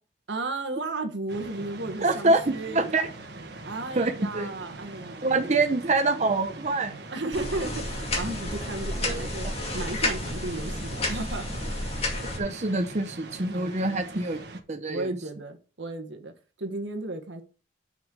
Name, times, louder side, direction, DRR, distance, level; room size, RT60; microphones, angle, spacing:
voice 1, 0.3-2.9 3.6-5.5 7.1-9.5 9.7-11.8 13.5-14.1 14.9-16.3 16.6-17.4, right 2 dB, 80° right, 1.5 m, -34 dB
sound 1, 1.3-14.6, right 2 dB, 65° right, 1.4 m, -42 dB
voice 2, 2.0-3.1 4.0-4.5 5.2-7.0 9.0-9.5 12.4-14.4 14.7-15.1, right 2 dB, 40° right, 0.8 m, -25 dB
sound 2, 7.3-12.4, left 2 dB, 35° left, 2.1 m, -31 dB
6.2 x 5.6 x 6.4 m
head